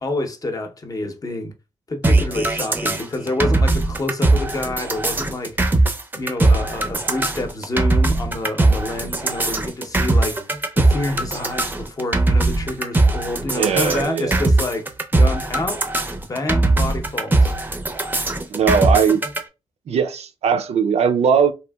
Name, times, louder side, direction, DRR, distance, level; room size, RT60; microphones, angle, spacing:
voice 1, 0.0-1.5 1.9-5.7 6.1-10.4 10.8-15.8 16.2-17.6, left 2 dB, 35° left, 0.6 m, -28 dB
sound 1, 2.0-19.4, right 2 dB, 15° right, 0.5 m, -20 dB
voice 2, 13.5-14.4 18.5-19.2 19.9-21.5, right 6 dB, 80° right, 0.4 m, -19 dB
2.9 x 2.6 x 2.2 m
cardioid pair, 90°, 11 cm